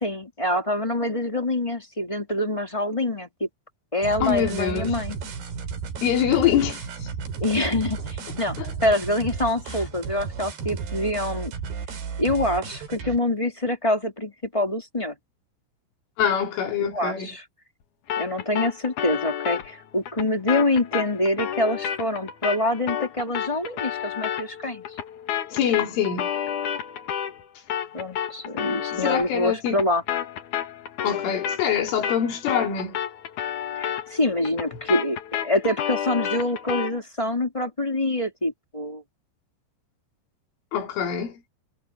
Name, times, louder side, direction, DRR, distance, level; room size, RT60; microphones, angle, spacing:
voice 1, 0.0-3.5 3.9-5.2 7.4-11.5 12.2-15.1 16.8-17.4 18.1-24.8 27.9-30.0 33.7-39.0, left 1 dB, 10° left, 1.7 m, -25 dB
sound 1, 4.0-13.2, right 6 dB, 60° right, 5.1 m, -33 dB
voice 2, 4.2-5.0 6.0-7.1 8.6-8.7 9.7-9.8 16.2-17.3 25.5-26.3 28.9-29.8 31.0-33.0 40.7-41.4, left 9 dB, 90° left, 6.2 m, -25 dB
sound 2, 18.1-27.4 27.7-37.0, left 9 dB, 60° left, 2.2 m, -31 dB
omnidirectional pair, 5.4 m